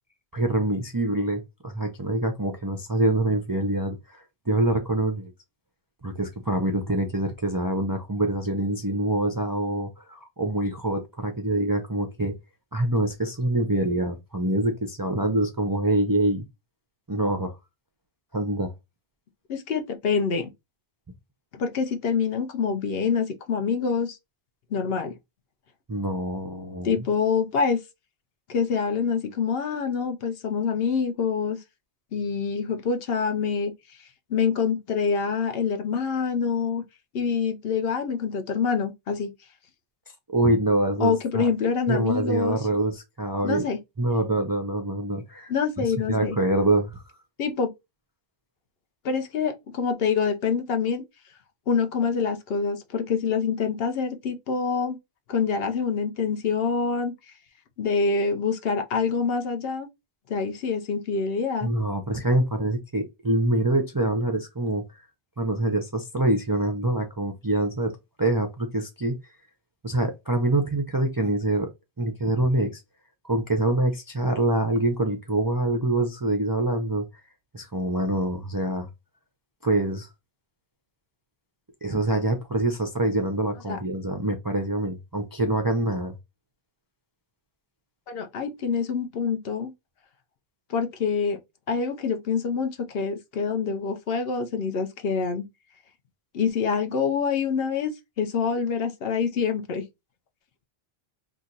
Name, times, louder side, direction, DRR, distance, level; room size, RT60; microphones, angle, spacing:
voice 1, 0.3-5.3 6.0-12.3 12.7-16.4 17.1-17.6 18.3-18.7 25.9-27.0 40.3-41.5 41.9-43.6 44.0-45.5 45.8-47.0 61.6-65.0 65.4-69.2 69.8-71.7 72.0-72.8 73.2-77.0 77.5-78.9 79.6-80.1 81.8-86.1, right 2 dB, 30° right, 0.4 m, -25 dB
voice 2, 19.5-20.5 21.5-24.2 24.7-25.1 26.8-27.8 28.5-31.6 32.1-33.7 34.3-36.8 37.1-39.3 41.0-42.6 43.4-43.8 45.5-46.4 47.4-47.7 49.0-51.0 51.7-55.0 55.3-57.1 57.8-59.9 60.3-61.7 83.6-83.8 88.1-89.7 90.7-91.4 91.7-95.4 96.3-97.9 98.2-99.8, left 5 dB, 70° left, 0.9 m, -26 dB
2.8 x 2.4 x 3.8 m
omnidirectional pair, 1.1 m